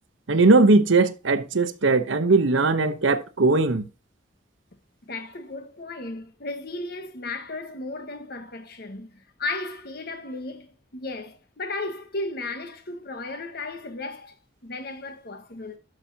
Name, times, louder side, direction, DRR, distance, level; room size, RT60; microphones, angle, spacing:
voice 1, 0.3-3.8, right 3 dB, 80° right, 0.9 m, -19 dB
voice 2, 5.0-14.4 14.6-15.8, left 2 dB, 55° left, 1.4 m, -35 dB
12.5 x 5.9 x 2.8 m
head